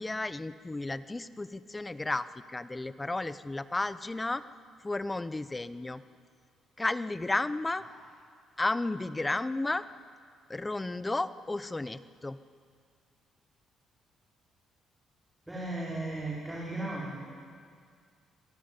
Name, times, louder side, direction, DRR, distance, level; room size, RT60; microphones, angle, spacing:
voice 1, 0.0-4.4 4.8-6.0 6.8-7.8 8.6-9.8 10.5-12.4, left 2 dB, 15° left, 14 dB, 0.8 m, -33 dB
voice 2, 15.5-17.2, right 2 dB, 10° right, -6 dB, 4.9 m, -36 dB
26.0 x 18.5 x 9.8 m, 2.1 s
cardioid pair, 115°, 0 cm